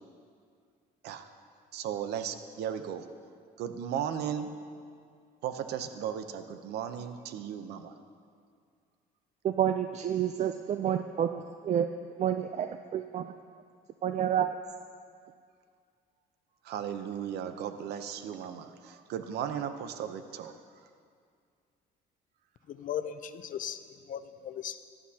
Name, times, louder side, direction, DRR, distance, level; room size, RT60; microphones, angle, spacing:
voice 1, 1.7-3.1 3.6-4.5 5.4-7.9 16.6-20.6, right 9 dB, 75° right, 0.8 m, -36 dB
voice 2, 9.4-11.9 12.2-13.3 14.0-14.5, right 9 dB, 45° right, 0.4 m, -29 dB
voice 3, 22.7-23.8 24.1-24.8, left 9 dB, 50° left, 0.6 m, -37 dB
17.0 x 12.0 x 2.9 m
cardioid pair, 110°, 17 cm